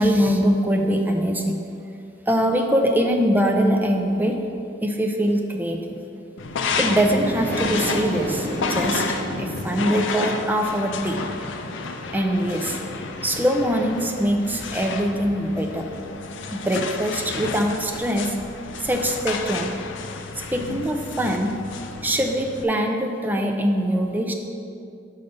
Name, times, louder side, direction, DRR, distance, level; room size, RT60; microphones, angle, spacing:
voice 1, 0.0-1.6 2.3-4.4 4.8-5.8 6.8-9.0 9.4-11.2 12.1-12.8 13.2-15.9 16.5-18.4 18.8-19.7 20.5-21.5 22.0-24.3, equal, 10° right, 2 dB, 0.5 m, -22 dB
sound 1, 6.4-22.6, left 4 dB, 80° left, 0.5 m, -31 dB
sound 2, 6.7-15.9, equal, 10° left, 1.3 m, -35 dB
5.7 x 5.1 x 5.3 m, 2.6 s
head